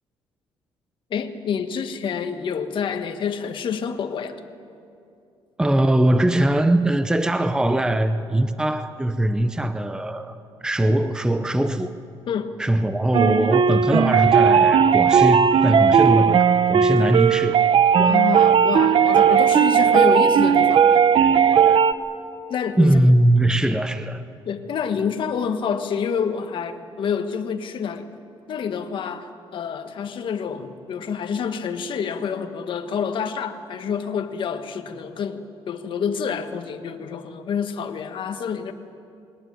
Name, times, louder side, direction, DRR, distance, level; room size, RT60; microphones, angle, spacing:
voice 1, 1.1-4.4 12.3-12.5 17.0-17.1 18.0-20.9 22.5-22.9 24.4-28.1 28.5-38.7, left 7 dB, 55° left, 1.6 m, -28 dB
voice 2, 5.6-12.0 12.6-17.6 22.8-24.2, right 1 dB, 5° right, 0.8 m, -21 dB
sound 1, 13.1-21.9, right 7 dB, 55° right, 0.8 m, -16 dB
22.0 x 18.5 x 9.6 m
cardioid pair, 120°, 10 cm